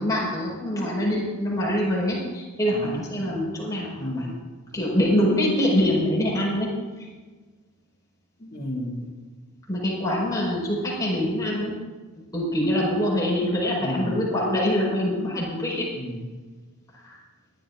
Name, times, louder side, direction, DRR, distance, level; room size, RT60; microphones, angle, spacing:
voice 1, 0.0-4.3 4.7-6.7 9.7-11.7 12.3-15.8 17.0-17.2, left 1 dB, 15° left, -5 dB, 5.0 m, -24 dB
voice 2, 3.9-4.4 8.4-9.1 11.4-11.7 13.7-14.1 15.9-16.3, equal, 45° left, -3 dB, 2.9 m, -33 dB
23.0 x 12.0 x 2.6 m, 1.3 s
head